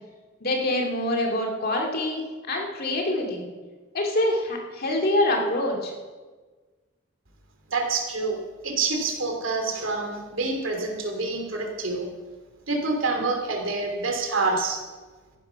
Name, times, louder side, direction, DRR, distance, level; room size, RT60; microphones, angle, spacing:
voice 1, 0.4-2.2 2.5-3.4 3.9-5.9, left 1 dB, 45° left, 1 dB, 2.4 m, -25 dB
voice 2, 7.7-8.4 8.6-12.1 12.7-14.8, right 3 dB, 65° right, 3 dB, 2.7 m, -27 dB
14.5 x 11.5 x 5.7 m, 1.4 s
head